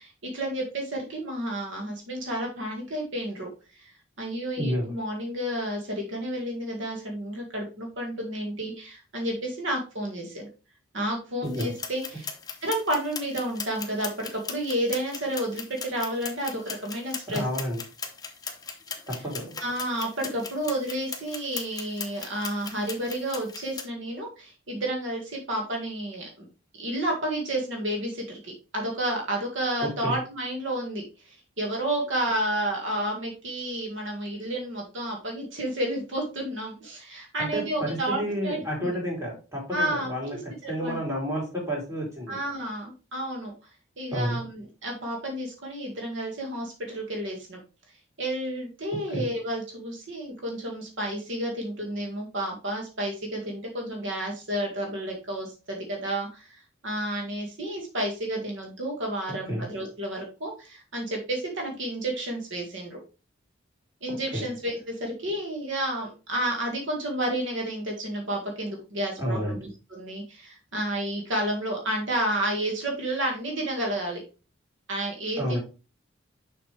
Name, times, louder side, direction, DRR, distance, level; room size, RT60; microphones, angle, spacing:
voice 1, 0.0-10.5 10.9-12.3 12.6-17.4 19.6-26.5 26.8-39.0 39.7-41.0 42.3-43.5 44.0-47.6 48.2-63.0 64.0-74.2 74.9-75.6, right 1 dB, 65° right, 0 dB, 1.8 m, -31 dB
voice 2, 4.6-4.9 11.4-11.7 17.3-17.8 19.1-19.6 29.8-30.2 37.4-40.4 40.7-42.4 44.1-44.4 49.1-49.2 59.4-59.6 64.3-64.4 69.2-69.6 75.4-75.6, equal, 15° right, -3 dB, 3.3 m, -30 dB
sound 1, 11.4-23.8, left 5 dB, 20° left, 0.9 m, -39 dB
6.6 x 5.7 x 3.3 m, 0.32 s
head